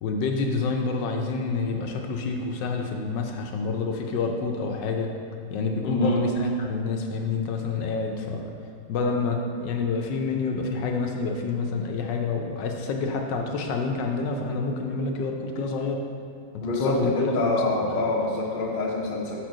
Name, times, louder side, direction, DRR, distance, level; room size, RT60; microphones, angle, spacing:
voice 1, 0.0-5.1 5.5-8.5 8.9-16.0 16.5-17.7, left 4 dB, 75° left, 3 dB, 1.2 m, -28 dB
voice 2, 5.8-6.3 16.6-19.4, left 2 dB, 50° left, -2 dB, 0.6 m, -26 dB
4.8 x 4.5 x 6.0 m, 2.3 s
omnidirectional pair, 2.1 m